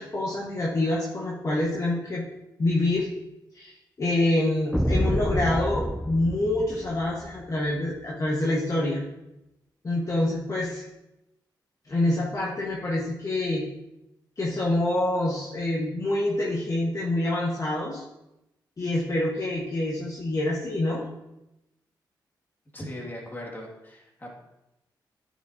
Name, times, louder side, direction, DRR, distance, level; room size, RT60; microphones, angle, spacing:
voice 1, 0.0-2.2 2.6-3.1 3.5-9.0 9.8-10.8 11.8-13.6 14.4-18.0 18.8-21.0, left 1 dB, 40° left, -5 dB, 1.4 m, -26 dB
sound 1, 4.7-7.3, equal, 5° left, 0.4 m, -28 dB
voice 2, 22.7-24.3, left 1 dB, 25° left, -1 dB, 2.2 m, -39 dB
9.9 x 6.3 x 2.8 m, 0.91 s
cardioid pair, 65°, 8 cm